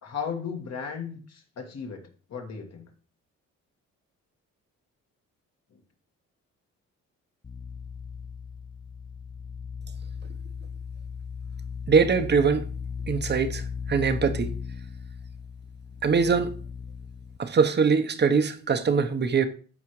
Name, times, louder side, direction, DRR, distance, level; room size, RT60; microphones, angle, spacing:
voice 1, 0.0-2.9, left 6 dB, 60° left, 1.9 m, -36 dB
sound 1, 7.4-17.4, left 6 dB, 15° left, 0.4 m, -37 dB
voice 2, 11.9-12.7 13.1-14.5 16.0-16.5 17.4-19.5, right 5 dB, 35° right, 0.9 m, -22 dB
13.5 x 4.8 x 3.2 m
cardioid pair, 90°, 30 cm